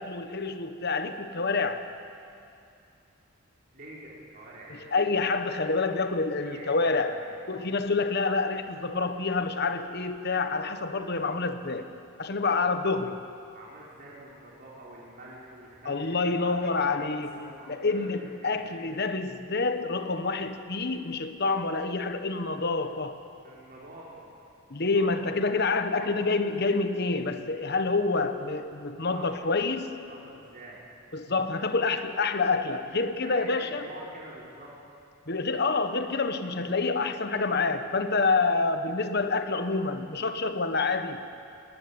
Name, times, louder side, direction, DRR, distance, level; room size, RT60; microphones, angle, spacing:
voice 1, 0.0-1.8 4.9-7.2 7.5-11.9 12.2-13.2 15.8-23.2 24.7-30.0 31.1-33.8 35.3-41.2, left 3 dB, 50° left, 9 dB, 1.2 m, -27 dB
voice 2, 3.7-5.0 6.3-7.3 13.5-17.0 17.3-18.9 23.4-24.3 24.9-25.2 26.0-26.2 29.1-29.5 30.1-30.9 33.2-34.7, right 1 dB, 40° right, -6 dB, 3.9 m, -46 dB
19.0 x 16.5 x 9.8 m, 2.6 s
head